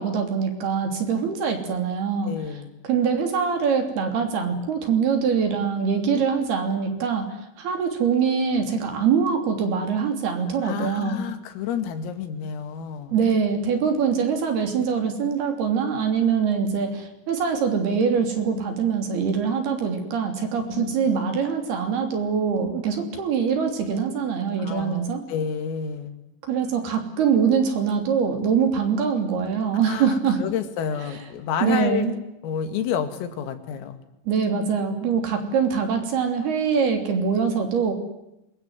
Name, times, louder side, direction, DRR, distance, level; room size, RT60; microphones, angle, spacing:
voice 1, 0.0-2.3 2.9-11.3 13.1-25.2 26.4-30.4 31.6-32.1 34.3-37.9, right 6 dB, 55° right, 5 dB, 4.8 m, -23 dB
voice 2, 2.2-2.7 10.5-13.2 20.7-21.0 24.6-26.2 29.9-32.1 32.4-34.0, left 8 dB, 85° left, 8 dB, 4.8 m, -30 dB
26.0 x 22.5 x 9.6 m, 0.88 s
omnidirectional pair, 5.8 m